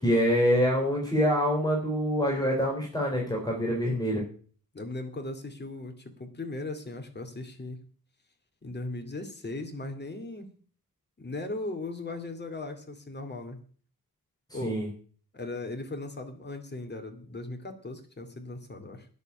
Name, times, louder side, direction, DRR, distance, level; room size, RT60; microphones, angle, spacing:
voice 1, 0.0-4.2 14.5-14.9, equal, 10° left, -2 dB, 3.6 m, -25 dB
voice 2, 4.7-7.8 8.6-10.5 11.2-13.6 14.5-14.8 15.3-19.1, left 2 dB, 25° left, 5 dB, 2.4 m, -38 dB
10.5 x 7.1 x 9.4 m, 0.43 s
wide cardioid pair, 130°, 37 cm